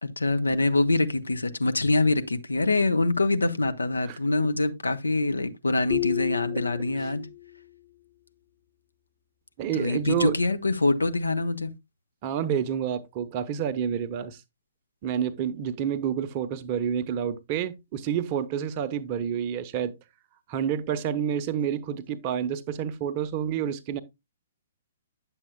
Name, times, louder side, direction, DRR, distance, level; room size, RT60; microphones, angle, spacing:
voice 1, 0.0-7.3 9.7-11.7, left 2 dB, 75° left, 0.8 m, -25 dB
voice 2, 4.1-4.5 6.5-6.6 9.6-10.3 12.2-14.4 15.0-19.9 20.5-24.0, right 9 dB, 30° right, 0.8 m, -29 dB
sound 1, 5.9-7.6, left 19 dB, 20° left, 0.6 m, -32 dB
9.5 x 7.2 x 2.2 m
figure-of-eight pair, 120°, 0 cm